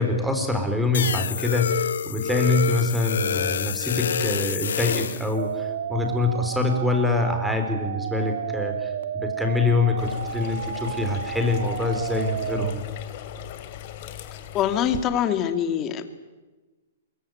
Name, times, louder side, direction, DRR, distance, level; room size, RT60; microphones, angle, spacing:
voice 1, 0.0-12.8, left 2 dB, ahead, 5 dB, 4.2 m, -25 dB
sound 1, 0.9-5.3, left 8 dB, 80° left, 0.9 m, -27 dB
sound 2, 5.4-12.7, right 8 dB, 70° right, 1.6 m, -32 dB
sound 3, 10.0-15.1, left 11 dB, 45° left, 2.9 m, -39 dB
voice 2, 14.5-16.0, left 9 dB, 25° left, 9 dB, 2.3 m, -24 dB
23.5 x 23.0 x 9.4 m, 1.2 s
hypercardioid pair, 150°, 0 cm